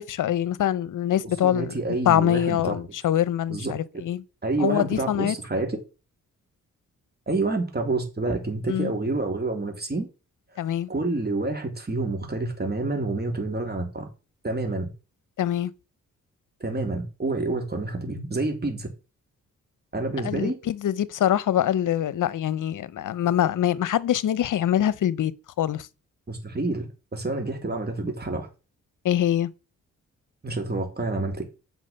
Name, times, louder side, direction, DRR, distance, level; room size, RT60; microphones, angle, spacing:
voice 1, 0.0-1.8 2.1-4.2 4.6-5.3 8.7-8.9 10.6-10.9 15.4-15.7 20.2-25.3 25.6-25.9 29.0-29.5, left 11 dB, 70° left, 0.8 m, -24 dB
voice 2, 1.4-2.8 3.5-3.8 4.4-5.8 7.3-10.1 10.9-14.1 14.4-14.9 16.6-18.9 19.9-20.6 26.3-28.5 30.4-31.4, right 2 dB, 30° right, 3.4 m, -28 dB
8.2 x 5.8 x 5.6 m
supercardioid pair, 50°, 33 cm